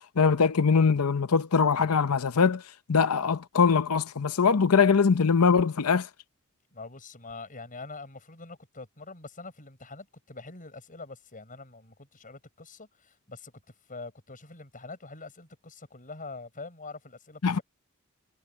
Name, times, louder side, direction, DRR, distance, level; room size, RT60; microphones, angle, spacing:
voice 1, 0.0-2.6 2.9-6.1 17.4-17.6, left 5 dB, 80° left, 0.7 m, -22 dB
voice 2, 6.7-17.6, left 3 dB, 40° left, 6.5 m, -44 dB
head